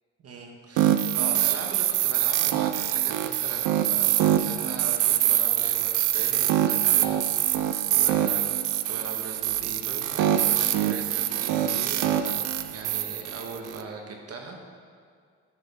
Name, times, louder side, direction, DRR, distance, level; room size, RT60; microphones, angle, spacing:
voice 1, 0.2-12.5 12.7-14.6, right 3 dB, 55° right, 2 dB, 1.5 m, -40 dB
sound 1, 0.8-13.8, right 12 dB, 85° right, 0.5 m, -24 dB
14.0 x 6.3 x 3.6 m, 2.1 s
cardioid pair, 90°, 30 cm